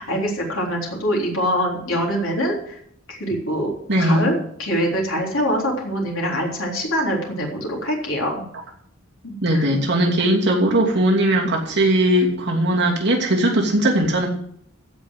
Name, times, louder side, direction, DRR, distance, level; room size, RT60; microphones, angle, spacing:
voice 1, 0.0-2.7 3.1-3.7 4.0-8.4 9.2-9.6, equal, 70° left, -1 dB, 3.7 m, -24 dB
voice 2, 3.9-4.3 9.4-14.3, right 1 dB, 55° right, -1 dB, 2.9 m, -19 dB
15.5 x 5.4 x 7.6 m, 0.69 s
head